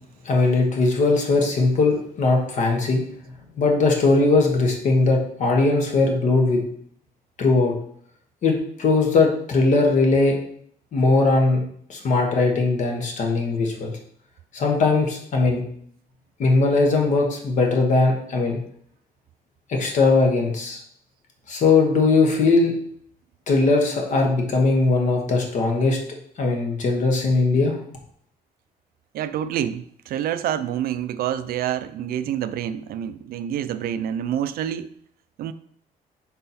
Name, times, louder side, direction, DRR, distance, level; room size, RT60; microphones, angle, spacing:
voice 1, 0.2-3.0 3.6-6.6 7.4-7.7 8.4-10.4 10.9-11.6 11.9-13.9 14.5-15.6 16.4-18.6 19.7-20.8 21.5-22.7 23.5-26.0 26.4-27.7, left 3 dB, 55° left, 1 dB, 1.3 m, -19 dB
voice 2, 29.1-34.9 35.4-35.5, right 10 dB, 75° right, 12 dB, 0.4 m, -27 dB
5.6 x 4.1 x 4.3 m, 0.65 s
cardioid pair, 165°, 16 cm